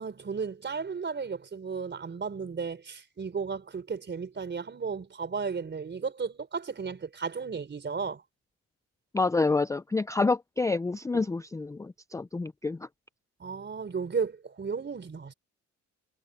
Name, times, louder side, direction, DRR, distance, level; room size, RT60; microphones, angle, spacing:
voice 1, 0.0-8.2 11.1-11.2 13.4-15.3, right 5 dB, 35° right, 4.4 m, -34 dB
voice 2, 9.1-12.9, left 3 dB, 10° left, 0.4 m, -28 dB
cardioid pair, 90°, 30 cm